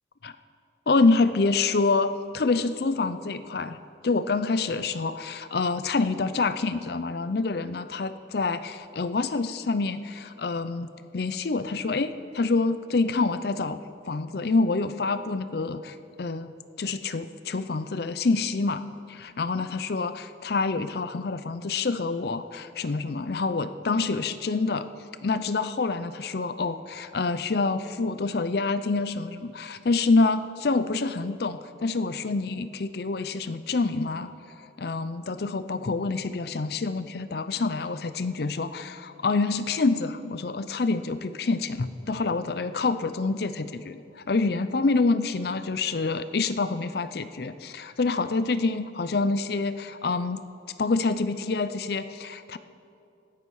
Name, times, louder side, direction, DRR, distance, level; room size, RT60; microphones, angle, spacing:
voice 1, 0.9-10.9 11.1-13.8 14.1-16.5 16.8-24.9 25.2-34.3 34.8-50.4 50.8-52.6, left 3 dB, 55° left, 13 dB, 0.5 m, -27 dB
17.0 x 13.5 x 4.8 m, 2.6 s
head